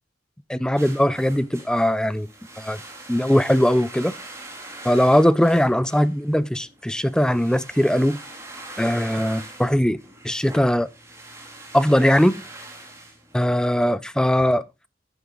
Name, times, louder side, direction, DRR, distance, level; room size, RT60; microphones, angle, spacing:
voice 1, 0.5-2.3 2.6-2.8 3.1-4.1 4.8-8.2 8.8-10.0 10.2-10.9 11.7-12.4 13.3-14.9, equal, 5° left, 0.5 m, -20 dB
sound 1, 0.8-13.8, right 2 dB, 15° right, 2.5 m, -42 dB
10.5 x 8.0 x 3.8 m
head